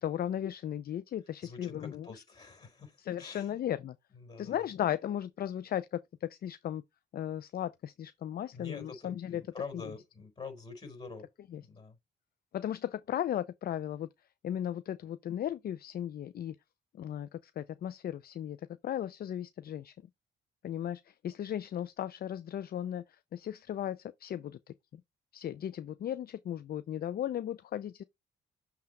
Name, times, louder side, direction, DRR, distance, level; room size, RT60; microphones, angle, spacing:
voice 1, 0.0-2.2 3.0-4.0 4.4-6.8 7.1-9.4 9.7-9.8 11.5-11.6 12.5-14.1 14.4-16.6 16.9-19.9 20.6-24.6 24.9-25.0 25.3-28.0, left 10 dB, 50° left, 0.4 m, -36 dB
voice 2, 1.4-3.5 4.1-4.5 8.5-11.3 11.6-12.0, left 4 dB, 20° left, 4.6 m, -46 dB
7.6 x 3.5 x 4.1 m
cardioid pair, 90°, 20 cm